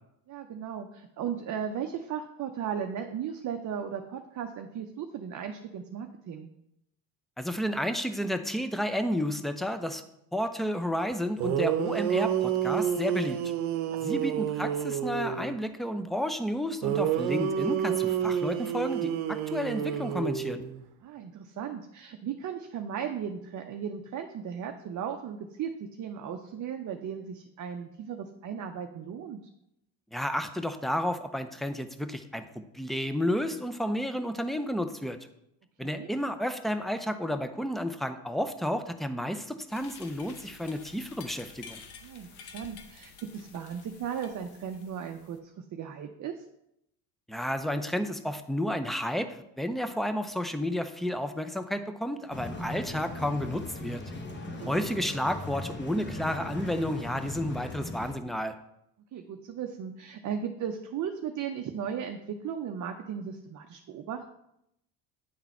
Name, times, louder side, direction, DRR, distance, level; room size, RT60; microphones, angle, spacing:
voice 1, 0.3-6.5 14.1-14.3 21.0-29.4 35.8-36.1 42.0-46.4 54.6-54.9 59.1-64.3, right 8 dB, 40° right, 4 dB, 0.6 m, -36 dB
voice 2, 7.4-10.0 10.3-13.4 14.0-20.6 30.1-35.2 35.8-41.8 47.3-54.0 54.6-58.6, equal, ahead, 9 dB, 0.5 m, -31 dB
sound 1, 11.1-11.2 11.4-15.6 16.8-20.8, right 9 dB, 70° right, 0.8 m, -29 dB
sound 2, 39.7-45.4, left 5 dB, 55° left, 1.1 m, -50 dB
sound 3, 52.3-58.1, left 2 dB, 25° left, 1.1 m, -39 dB
9.4 x 3.9 x 4.3 m, 0.80 s
supercardioid pair, 80°, 48 cm